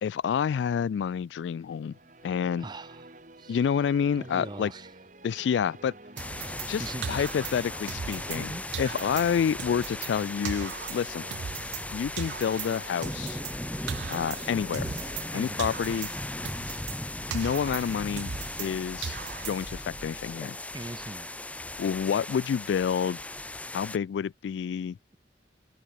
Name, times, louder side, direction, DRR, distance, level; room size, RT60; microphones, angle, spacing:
voice 1, 0.0-2.0 2.2-2.7 3.5-4.7 5.2-5.9 6.6-8.5 8.8-11.2 11.9-13.4 14.1-14.9 15.3-16.1 17.3-18.3 18.6-19.2 19.4-20.6 21.8-23.2 23.7-25.0, left 7 dB, 90° left, 0.3 m, -28 dB
sound 1, 1.7-17.8, right 2 dB, 45° right, 3.4 m, -50 dB
voice 2, 2.6-3.1 3.4-3.6 4.2-4.9 6.7-7.2 8.3-8.6 15.3-15.7 20.7-21.3, right 2 dB, 25° right, 0.7 m, -40 dB
sound 2, 6.2-24.0, left 1 dB, 10° left, 1.6 m, -37 dB
sound 3, 6.2-8.5 8.7-11.9 12.2-15.3 15.6-18.7 19.0-19.9, right 8 dB, 75° right, 0.4 m, -39 dB
open air
head